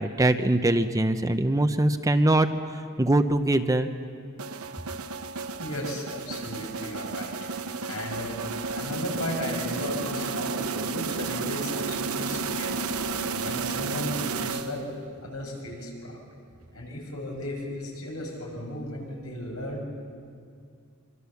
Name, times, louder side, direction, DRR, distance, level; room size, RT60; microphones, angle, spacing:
voice 1, 0.0-2.5 3.0-3.9, right 1 dB, 15° right, 8 dB, 0.8 m, -22 dB
sound 1, 4.4-15.1, right 4 dB, 85° right, 1.1 m, -32 dB
voice 2, 5.6-7.5 7.8-8.4 8.7-12.9 13.4-14.9 15.2-16.2 16.7-19.9, left 1 dB, 80° left, 0 dB, 6.7 m, -35 dB
26.0 x 24.5 x 7.1 m, 2.3 s
head